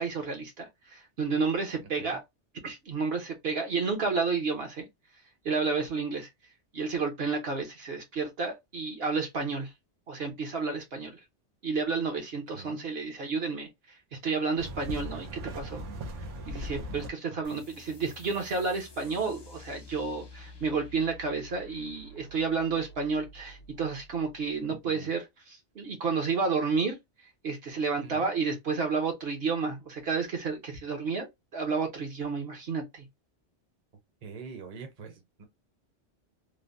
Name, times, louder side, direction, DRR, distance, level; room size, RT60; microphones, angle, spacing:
voice 1, 0.0-2.2 2.6-4.9 5.4-6.3 6.7-9.7 10.1-11.2 11.6-13.7 14.2-15.8 16.5-27.0 27.4-31.3 31.5-33.0, right 4 dB, 60° right, 1.0 m, -31 dB
voice 2, 12.5-12.9 17.3-17.6 24.8-25.1 28.0-28.3 34.2-35.4, right 5 dB, 40° right, 0.7 m, -45 dB
sound 1, 14.6-17.1, equal, 90° right, 1.1 m, -38 dB
sound 2, 17.4-24.6, left 1 dB, 40° left, 0.3 m, -50 dB
3.2 x 2.1 x 2.5 m
omnidirectional pair, 1.2 m